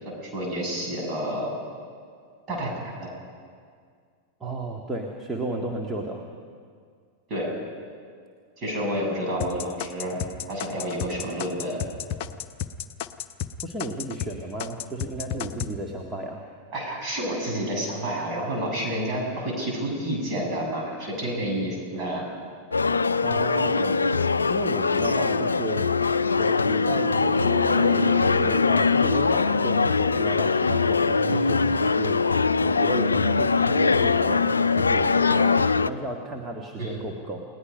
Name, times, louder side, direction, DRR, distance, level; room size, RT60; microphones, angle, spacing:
voice 1, 0.1-1.5 2.5-3.1 7.3-7.5 8.6-10.2 10.5-11.8 16.7-22.3 24.9-25.3 31.3-31.5 36.8-37.1, right 1 dB, 35° right, -1 dB, 7.7 m, -29 dB
voice 2, 4.4-6.2 9.2-9.3 13.6-16.4 23.2-24.1 24.5-25.9 26.4-32.2 32.6-37.4, right 1 dB, 15° right, 0 dB, 1.8 m, -33 dB
sound 1, 9.4-14.3 14.6-15.7, left 10 dB, 45° left, 0.8 m, -32 dB
sound 2, 22.7-35.9, left 4 dB, 75° left, 0.5 m, -22 dB
Bowed string instrument, 25.2-28.8, right 10 dB, 60° right, 0.7 m, -36 dB
29.5 x 18.5 x 5.5 m, 2.1 s
figure-of-eight pair, 90°, 0 cm